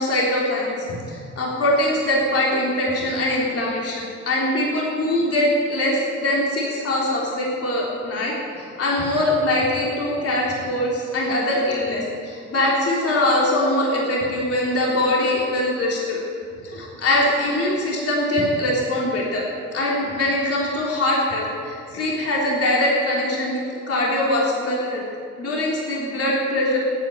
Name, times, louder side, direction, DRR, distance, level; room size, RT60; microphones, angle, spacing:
voice 1, 0.0-16.2 16.6-19.4 19.7-23.6 23.9-25.0 25.4-26.8, left 1 dB, 50° left, -3 dB, 3.5 m, -22 dB
14.0 x 9.5 x 8.9 m, 2.4 s
cardioid pair, 90°, 30 cm